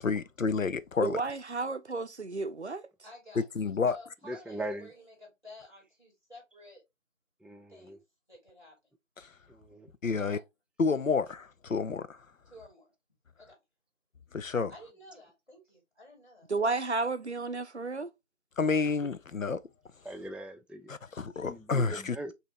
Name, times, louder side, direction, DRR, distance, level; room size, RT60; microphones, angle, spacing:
voice 1, 0.0-1.2 3.6-4.0 9.2-9.3 10.0-10.4 10.8-12.2 14.3-14.7 18.6-19.6 20.9-22.2, left 4 dB, 85° left, 0.6 m, -29 dB
voice 2, 1.0-2.8 16.5-18.1, right 3 dB, 60° right, 0.5 m, -32 dB
voice 3, 3.0-6.8 7.7-8.0 8.3-8.7 10.1-10.4 12.5-12.9 13.4-13.6 14.7-16.5, left 1 dB, 35° left, 3.0 m, -52 dB
voice 4, 4.2-4.9 7.4-8.0 9.5-9.9 18.7-19.1 20.0-22.3, right 1 dB, 5° right, 0.4 m, -41 dB
5.8 x 2.8 x 3.0 m
figure-of-eight pair, 180°, 39 cm